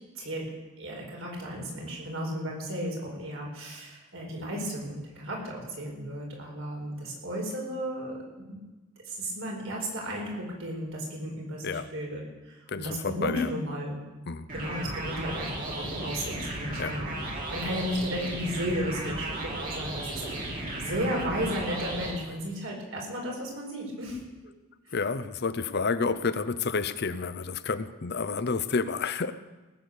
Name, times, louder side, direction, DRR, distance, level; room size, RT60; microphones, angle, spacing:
voice 1, 0.8-8.2 8.5-8.6 9.1-14.0 14.5-24.5 24.9-25.0, equal, 70° right, -1 dB, 4.6 m, -34 dB
voice 2, 12.7-13.5 14.3-14.5 16.8-17.0 24.9-29.3, left 4 dB, 50° left, 12 dB, 0.6 m, -30 dB
sound 1, 14.5-22.1, right 1 dB, 40° right, 2.8 m, -35 dB
18.5 x 8.6 x 6.6 m, 1.2 s
head